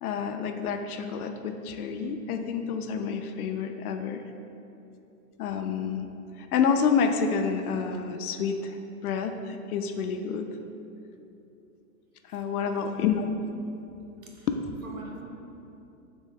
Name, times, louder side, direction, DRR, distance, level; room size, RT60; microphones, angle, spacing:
voice 1, 0.0-4.2 5.4-6.1 6.4-10.5 12.3-13.3 14.5-14.6, left 6 dB, 70° left, 7 dB, 0.5 m, -28 dB
voice 2, 12.3-13.0 14.2-14.5 14.8-15.3, right 2 dB, 65° right, -1 dB, 0.9 m, -44 dB
3.9 x 3.6 x 3.7 m, 2.8 s
hypercardioid pair, 160°, 45 cm